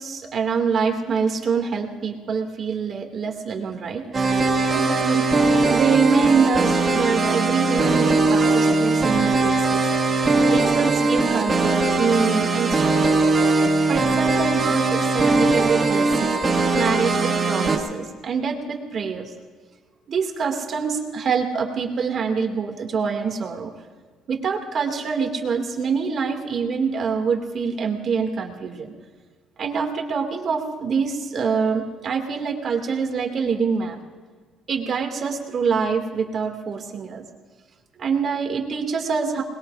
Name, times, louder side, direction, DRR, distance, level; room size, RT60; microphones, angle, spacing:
voice 1, 0.0-4.2 4.7-5.3 5.7-9.8 10.5-13.2 13.9-16.3 16.7-19.3 20.1-23.7 24.3-28.9 29.6-34.0 34.7-37.2 38.0-39.4, right 5 dB, 45° right, 3 dB, 2.2 m, -25 dB
sound 1, 4.1-17.8, right 3 dB, 30° right, 2.0 m, -20 dB
27.0 x 20.5 x 2.5 m, 1.5 s
cardioid pair, 125°, 0 cm